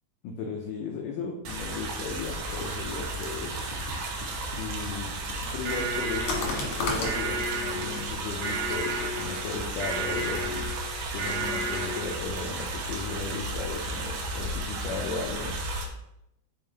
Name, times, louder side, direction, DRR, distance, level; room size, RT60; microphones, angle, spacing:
voice 1, 0.2-3.6 4.6-5.1 5.4-10.7 11.1-15.6, left 4 dB, 90° left, 1 dB, 1.8 m, -35 dB
sound 1, 1.5-15.9, right 2 dB, 85° right, 3.1 m, -34 dB
sound 2, 1.9-7.2, left 2 dB, 60° left, 1.7 m, -36 dB
sound 3, 5.6-12.4, right 2 dB, 70° right, 2.9 m, -33 dB
7.4 x 4.8 x 3.3 m, 0.83 s
omnidirectional pair, 4.7 m